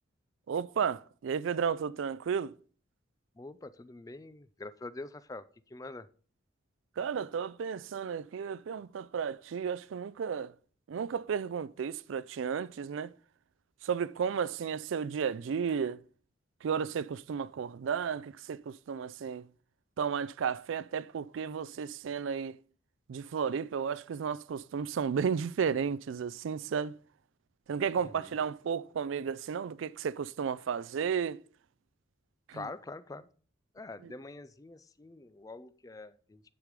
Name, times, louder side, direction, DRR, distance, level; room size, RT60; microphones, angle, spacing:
voice 1, 0.5-2.5 7.0-10.5 10.9-13.1 13.8-16.0 16.6-19.5 20.0-22.6 23.1-26.9 27.7-31.4 32.5-32.6 34.0-34.1, right 7 dB, 80° right, 0.4 m, -33 dB
voice 2, 3.4-6.1 28.0-28.3 32.5-33.3 33.7-36.4, left 2 dB, 15° left, 0.3 m, -45 dB
10.0 x 4.9 x 5.0 m
head